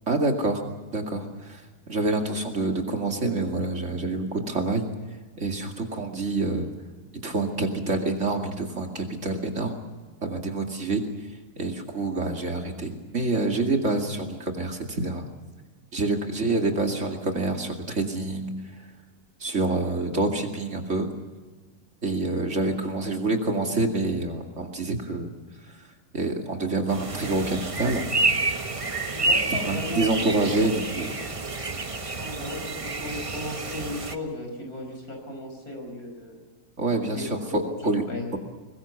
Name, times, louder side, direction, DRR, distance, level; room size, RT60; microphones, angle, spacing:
voice 1, 0.1-0.6 0.9-1.6 1.9-4.9 5.4-6.7 7.1-9.8 10.2-11.1 11.6-15.2 15.9-18.7 19.4-21.1 22.0-25.3 26.1-28.1 29.6-31.1 36.8-38.0 38.3-38.4, right 2 dB, 50° right, 3 dB, 2.7 m, -27 dB
sound 1, 26.9-34.2, right 2 dB, 25° right, 1.1 m, -29 dB
voice 2, 29.1-30.8 32.2-36.4 37.1-37.3 37.8-38.3, left 1 dB, 70° left, 3 dB, 5.9 m, -36 dB
22.5 x 20.0 x 7.1 m, 1.3 s
omnidirectional pair, 1.6 m